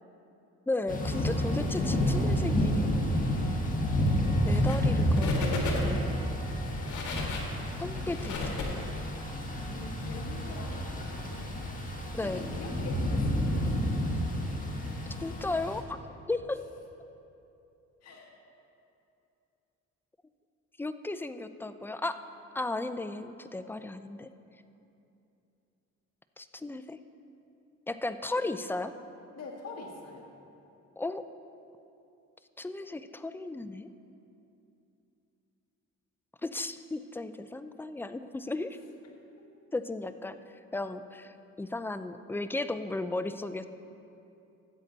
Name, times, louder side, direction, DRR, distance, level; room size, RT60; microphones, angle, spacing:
voice 1, 0.7-2.9 4.4-6.0 7.8-8.8 12.1-12.4 15.2-16.0 16.3-16.6 20.8-22.2 22.5-24.3 26.4-27.0 27.9-28.9 31.0-31.2 32.6-33.9 36.4-38.8 39.7-40.4 40.7-43.7, left 2 dB, 5° left, 11 dB, 0.4 m, -35 dB
Thunder / Rain, 0.9-15.8, equal, 25° left, 1.6 m, -30 dB
sound 1, 4.5-4.9 5.1-6.1 6.6-9.3, left 4 dB, 75° left, 1.7 m, -36 dB
voice 2, 9.7-11.6 12.2-13.5 18.0-18.3 29.4-30.3, left 3 dB, 55° left, 0 dB, 1.8 m, -44 dB
13.5 x 8.0 x 4.0 m, 2.8 s
cardioid pair, 90°, 30 cm